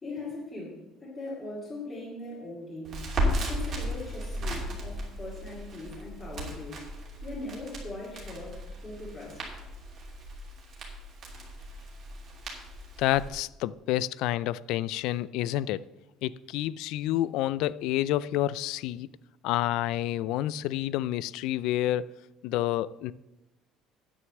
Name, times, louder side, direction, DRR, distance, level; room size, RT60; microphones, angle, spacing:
voice 1, 0.0-3.1 3.5-6.8 7.2-9.4, left 2 dB, 20° left, 2.4 m, -40 dB
Crackle, 2.9-13.3, equal, 35° right, 2.8 m, -35 dB
voice 2, 13.0-15.9 16.2-19.1 19.4-22.1 22.4-23.1, left 14 dB, 70° left, 0.3 m, -29 dB
9.4 x 6.3 x 7.7 m
cardioid pair, 165°, 0 cm